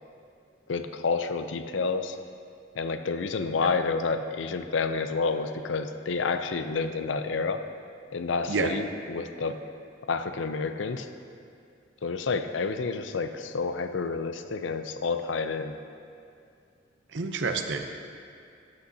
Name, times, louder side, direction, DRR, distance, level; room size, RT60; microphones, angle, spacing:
voice 1, 0.7-2.2 2.7-7.6 8.1-9.6 10.1-11.1 12.0-15.8, left 4 dB, 80° left, 9 dB, 0.5 m, -29 dB
voice 2, 17.1-17.8, right 4 dB, 75° right, 6 dB, 0.7 m, -28 dB
14.0 x 8.8 x 2.8 m, 2.4 s
head